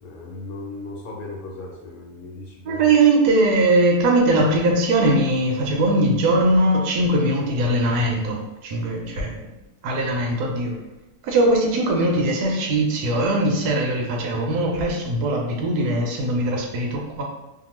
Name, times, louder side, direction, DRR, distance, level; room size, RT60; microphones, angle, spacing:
voice 1, 0.0-3.0, left 2 dB, 75° left, -1 dB, 1.1 m, -37 dB
voice 2, 2.7-9.5 9.8-10.7 11.2-17.2, right 2 dB, 85° right, 0 dB, 1.2 m, -20 dB
2.9 x 2.2 x 2.9 m, 0.97 s
omnidirectional pair, 1.7 m